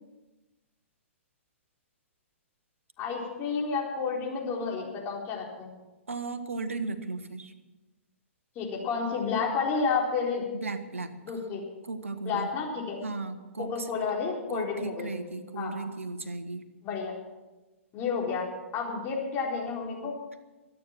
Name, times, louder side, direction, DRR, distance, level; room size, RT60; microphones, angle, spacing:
voice 1, 3.0-5.7 8.6-10.5 11.2-11.6 12.2-13.0 13.6-15.1 15.6-15.7 16.8-17.1 17.9-20.2, left 5 dB, 25° left, -2 dB, 4.2 m, -31 dB
voice 2, 6.1-7.5 10.6-11.2 11.8-12.5 13.0-13.9 14.5-16.7, right 3 dB, 70° right, 10 dB, 1.5 m, -35 dB
23.0 x 9.4 x 6.0 m, 1.1 s
figure-of-eight pair, 115°, 7 cm